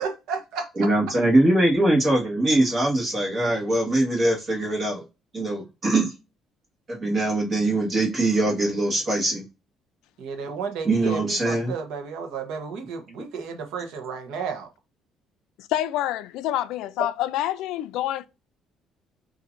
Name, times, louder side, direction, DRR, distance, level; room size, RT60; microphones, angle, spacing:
voice 1, 0.0-0.9 10.2-14.7, right 5 dB, 80° right, 0.9 m, -32 dB
voice 2, 0.8-5.0 5.3-6.1 6.9-9.4 10.8-11.7, right 1 dB, 30° right, 1.5 m, -22 dB
voice 3, 15.6-18.3, left 13 dB, 85° left, 0.3 m, -27 dB
5.7 x 2.6 x 2.5 m
cardioid pair, 180°, 0 cm